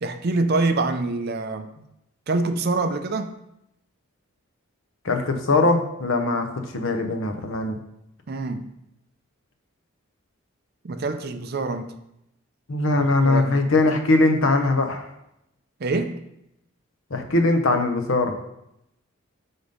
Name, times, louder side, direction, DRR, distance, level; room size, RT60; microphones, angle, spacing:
voice 1, 0.0-1.7 2.3-3.3 8.3-8.7 10.8-12.0 13.0-13.6 15.8-16.2, right 3 dB, 45° right, 8 dB, 0.5 m, -25 dB
voice 2, 5.0-6.5 6.7-7.8 12.7-15.1 17.1-18.3, left 2 dB, 65° left, 5 dB, 0.8 m, -21 dB
5.2 x 4.0 x 5.1 m, 0.83 s
head